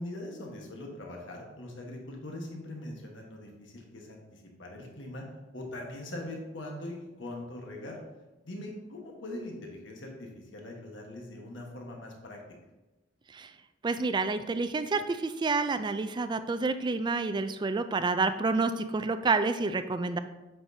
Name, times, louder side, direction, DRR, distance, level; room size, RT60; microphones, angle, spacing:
voice 1, 0.0-5.2 5.5-8.0 8.4-12.4, left 1 dB, 80° left, 0 dB, 1.3 m, -41 dB
voice 2, 13.8-20.2, right 3 dB, 25° right, 11 dB, 0.3 m, -29 dB
7.8 x 6.0 x 2.7 m, 1.1 s
head